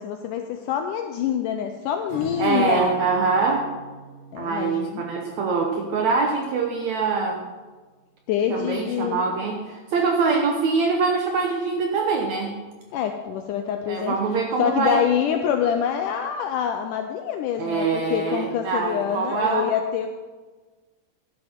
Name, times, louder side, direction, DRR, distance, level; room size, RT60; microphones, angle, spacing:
voice 1, 0.0-2.9 4.3-5.0 8.3-9.2 12.9-14.1 14.6-20.1, left 9 dB, 85° left, 6 dB, 1.9 m, -26 dB
Acoustic guitar / Strum, 2.1-6.9, right 3 dB, 35° left, 3.2 m, -42 dB
voice 2, 2.4-3.7 4.4-7.4 8.5-12.5 13.9-15.0 17.6-19.7, right 4 dB, 70° right, 2 dB, 1.7 m, -24 dB
13.0 x 10.5 x 4.4 m, 1.3 s
omnidirectional pair, 4.3 m